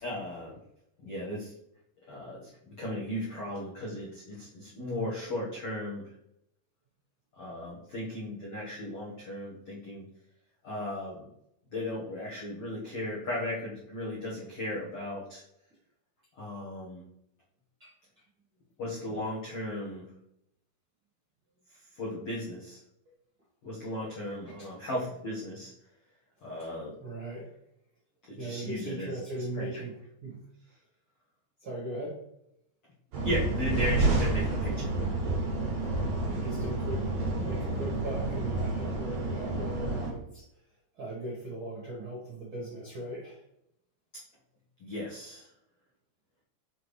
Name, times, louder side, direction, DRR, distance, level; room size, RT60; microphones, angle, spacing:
voice 1, 0.0-0.6 1.0-1.5 2.1-6.1 7.3-10.0 10.6-11.2 11.7-15.4 16.4-17.0 18.8-20.1 21.9-22.8 23.6-25.7 26.4-26.9 28.3-29.8 33.2-34.9 44.8-45.5, left 1 dB, 85° left, -7 dB, 1.3 m, -36 dB
voice 2, 27.0-27.4 28.4-29.9 30.2-30.4 31.6-32.2 36.3-37.0 37.3-40.4 41.0-43.4, right 1 dB, 80° right, -5 dB, 1.1 m, -38 dB
sound 1, 33.1-40.1, right 2 dB, 50° right, 2.6 m, -29 dB
7.2 x 4.0 x 3.3 m, 0.78 s
omnidirectional pair, 5.1 m